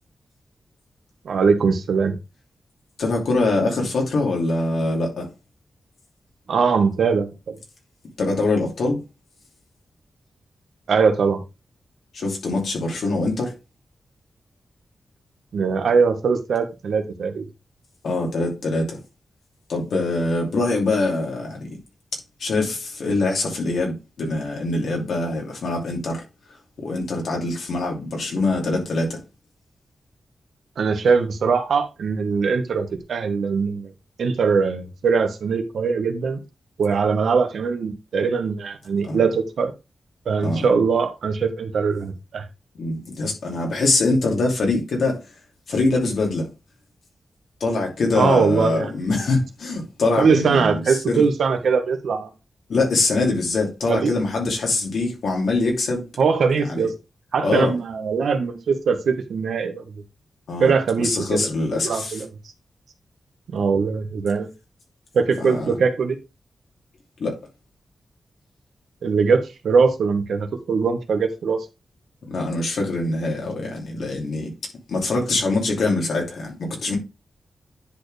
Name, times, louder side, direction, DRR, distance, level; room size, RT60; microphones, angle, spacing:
voice 1, 1.2-2.1 6.5-7.6 10.9-11.4 15.5-17.4 30.8-33.9 34.2-36.4 36.8-39.7 40.3-42.4 48.1-48.9 50.1-52.3 53.9-54.1 56.2-56.9 57.3-59.8 60.6-61.5 61.8-62.3 63.5-64.5 65.1-66.2 69.0-71.6, right 5 dB, 90° right, 1.3 m, -21 dB
voice 2, 3.0-5.3 8.2-9.0 12.1-13.5 18.0-19.0 19.7-21.8 22.4-26.2 26.8-29.2 39.0-39.2 40.4-40.7 42.7-45.2 45.7-46.5 47.6-51.3 52.7-56.1 56.6-56.9 57.4-57.8 60.5-60.7 61.0-62.2 65.4-65.8 67.2-67.4 72.3-74.5 74.9-77.0, left 2 dB, 85° left, 2.8 m, -23 dB
10.0 x 4.4 x 3.3 m
wide cardioid pair, 120°, 0 cm